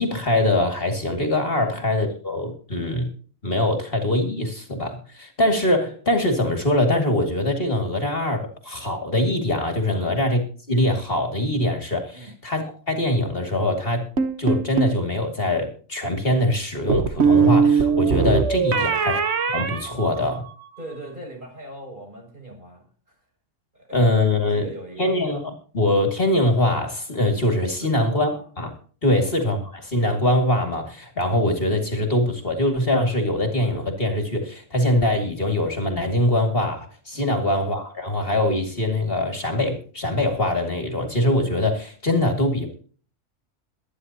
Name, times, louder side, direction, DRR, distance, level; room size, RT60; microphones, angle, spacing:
voice 1, 0.0-3.1 3.4-10.4 10.7-14.1 14.4-19.2 19.5-20.4 23.9-24.7 25.0-28.3 28.6-28.7 29.0-42.8, left 1 dB, 50° left, 4 dB, 2.5 m, -23 dB
sound 1, 14.2-15.0 16.9-20.7, right 5 dB, 60° right, 1.4 m, -21 dB
voice 2, 18.7-19.0 20.8-23.2 23.7-25.1 27.8-28.5 29.1-29.3 37.1-37.4, right 1 dB, 40° right, 0 dB, 7.0 m, -40 dB
23.0 x 10.0 x 2.9 m, 0.41 s
omnidirectional pair, 1.3 m